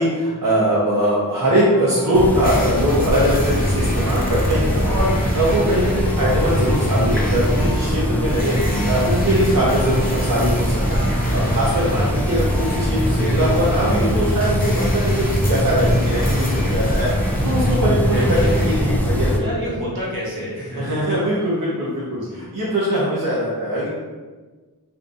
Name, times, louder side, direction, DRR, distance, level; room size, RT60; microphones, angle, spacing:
voice 1, 0.0-11.0 11.3-19.5 20.8-23.9, equal, 55° right, -8 dB, 0.8 m, -21 dB
sound 1, 1.5-14.4, left 2 dB, 65° left, 0.6 m, -35 dB
sound 2, 2.1-19.4, equal, 5° left, 0.4 m, -21 dB
sound 3, 2.4-18.7, left 1 dB, 25° left, 0.7 m, -31 dB
voice 2, 18.0-18.9 19.3-20.9 22.1-22.4, equal, 75° right, -6 dB, 1.2 m, -29 dB
2.7 x 2.6 x 3.6 m, 1.3 s
wide cardioid pair, 50°, 38 cm